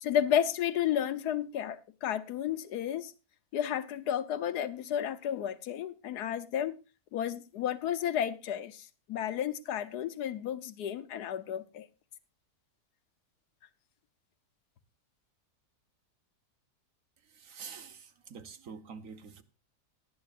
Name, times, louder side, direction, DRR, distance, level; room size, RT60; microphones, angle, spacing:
voice 1, 0.0-3.1 3.5-6.8 7.1-11.9, left 10 dB, 85° left, 1.4 m, -32 dB
voice 2, 17.3-19.4, right 5 dB, 60° right, 1.5 m, -46 dB
19.0 x 9.9 x 2.5 m
omnidirectional pair, 1.7 m